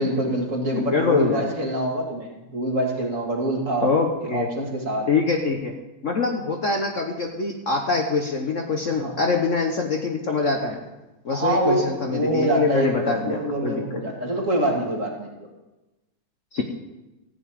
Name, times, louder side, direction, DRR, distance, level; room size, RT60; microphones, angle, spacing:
voice 1, 0.0-3.9 4.3-5.1 8.9-9.1 11.3-15.5, right 1 dB, 45° right, 0 dB, 2.4 m, -25 dB
voice 2, 0.7-1.5 3.8-4.5 5.1-5.7 6.0-10.8 11.2-14.0 16.5-16.6, left 4 dB, 50° left, 2 dB, 1.2 m, -24 dB
14.5 x 5.3 x 9.2 m, 1.0 s
omnidirectional pair, 2.1 m